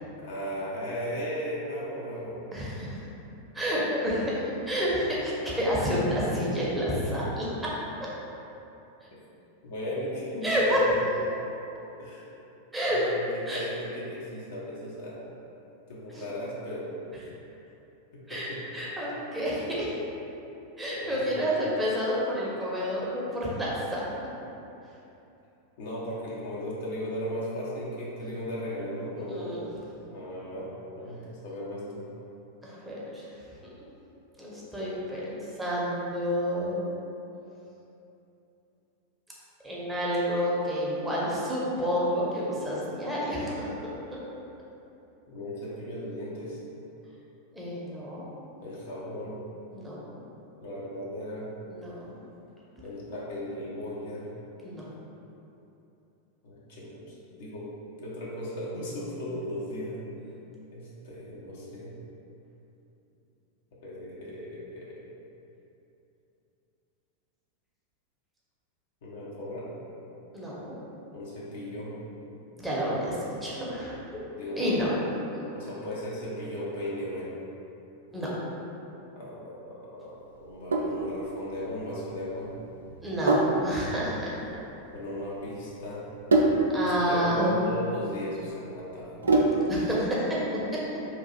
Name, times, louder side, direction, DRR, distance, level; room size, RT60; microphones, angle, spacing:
voice 1, 0.2-2.4 9.6-10.8 12.0-12.3 12.9-15.2 15.9-16.9 18.1-18.6 21.0-21.5 25.8-29.6 30.1-32.0 45.3-46.6 48.6-49.4 50.6-51.5 52.8-54.3 56.4-57.1 57.4-57.7 58.0-60.0 60.7-61.9 63.8-65.0 69.0-69.7 71.1-71.9 74.4-74.9 75.5-77.3 79.2-82.5 84.9-86.0 86.8-89.1, equal, 55° left, -6 dB, 0.8 m, -36 dB
voice 2, 2.5-3.1 3.5-4.4 4.7-7.7 10.4-10.8 12.7-13.0 13.5-13.6 16.1-16.2 18.3-19.9 20.8-24.0 29.3-29.7 32.6-33.2 34.4-36.9 39.6-43.9 47.5-48.3 49.7-50.2 51.7-52.2 54.6-54.8 70.3-70.8 72.6-74.2 74.6-74.9 78.1-78.3 83.0-84.4 86.7-87.6 89.7-90.4 90.7-90.8, equal, 10° right, -7 dB, 0.7 m, -29 dB
Sink (filling or washing), 80.4-89.9, right 2 dB, 70° right, 0.3 m, -28 dB
3.0 x 2.4 x 4.2 m, 2.9 s
figure-of-eight pair, 90°, 0 cm